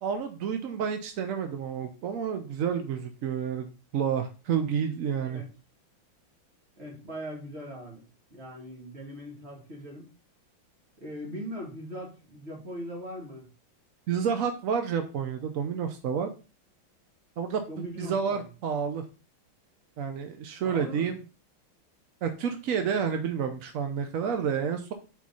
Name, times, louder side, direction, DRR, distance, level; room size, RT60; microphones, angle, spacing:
voice 1, 0.0-3.7 3.9-5.4 14.1-16.3 17.4-19.0 20.0-21.2 22.2-24.9, right 7 dB, 70° right, 7 dB, 0.8 m, -30 dB
voice 2, 6.7-8.0 8.3-10.1 11.0-13.5 17.7-18.5 20.6-21.1, equal, 30° right, -2 dB, 2.3 m, -40 dB
4.5 x 4.4 x 5.4 m, 0.33 s
omnidirectional pair, 2.2 m